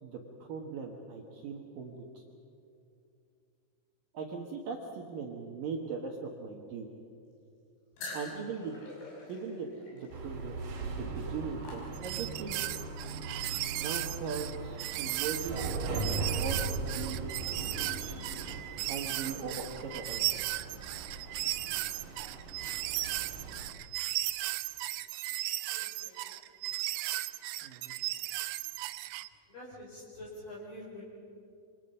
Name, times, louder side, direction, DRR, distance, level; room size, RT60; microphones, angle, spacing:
voice 1, 0.0-2.2 4.1-6.9 8.1-8.8 9.3-10.6 10.9-12.6 13.8-15.7 16.2-17.4 18.9-20.2 27.6-27.9, right 5 dB, 65° right, 1 dB, 2.3 m, -39 dB
sound 1, 8.0-12.4, left 2 dB, 90° left, 8.4 m, -47 dB
sound 2, 10.1-23.7, right 3 dB, 50° right, 3.3 m, -39 dB
sound 3, 11.9-29.3, right 16 dB, 85° right, 3.2 m, -36 dB
voice 2, 25.7-26.7 29.5-31.0, left 1 dB, 45° left, -5 dB, 6.1 m, -47 dB
26.5 x 25.5 x 5.6 m, 2.6 s
omnidirectional pair, 5.8 m